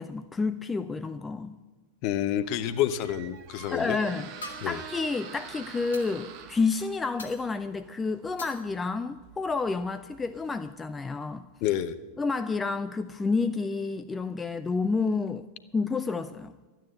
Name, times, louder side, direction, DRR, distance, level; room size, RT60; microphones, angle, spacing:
voice 1, 0.0-1.6 3.7-11.5 12.2-15.5 15.7-16.5, left 4 dB, 15° left, 0.4 m, -30 dB
voice 2, 2.0-4.0 4.6-4.8 11.6-11.9, left 11 dB, 45° left, 0.8 m, -28 dB
Squeak, 2.2-11.0, right 8 dB, 40° right, 1.3 m, -47 dB
sound 1, 2.9-3.1 4.4-5.0 5.9-6.1 7.2-7.6 8.4-8.7 10.0-10.1 10.5-10.6, left 2 dB, 70° left, 1.9 m, -44 dB
12.5 x 9.1 x 8.1 m
figure-of-eight pair, 90°, 0 cm